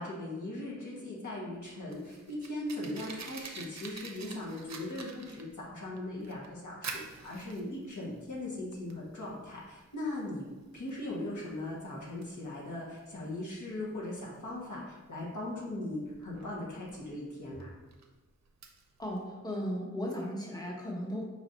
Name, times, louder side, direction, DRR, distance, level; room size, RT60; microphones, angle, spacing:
voice 1, 0.0-10.5 10.7-17.7, left 1 dB, 80° left, -5 dB, 1.3 m, -39 dB
Fire, 1.6-19.2, right 4 dB, 65° right, 0.5 m, -49 dB
voice 2, 19.0-21.2, equal, 15° left, -3 dB, 1.1 m, -36 dB
5.1 x 2.5 x 4.1 m, 1.2 s
wide cardioid pair, 60°, 30 cm